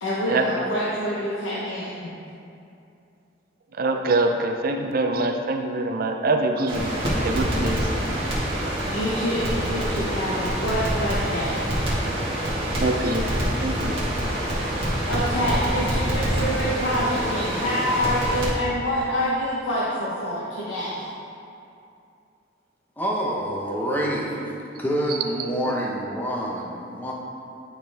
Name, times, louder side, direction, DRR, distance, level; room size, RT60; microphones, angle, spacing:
voice 1, 0.0-2.1 8.9-11.7 15.1-21.1, equal, 85° left, -8 dB, 1.1 m, -26 dB
voice 2, 3.8-6.9 7.2-7.8 12.8-14.0, right 2 dB, 50° right, 4 dB, 0.5 m, -24 dB
Crackle, 6.7-18.5, equal, 30° right, 1.9 m, -26 dB
voice 3, 23.0-24.4 24.8-27.1, equal, 10° left, -3 dB, 0.9 m, -27 dB
10.5 x 5.0 x 3.5 m, 2.6 s
head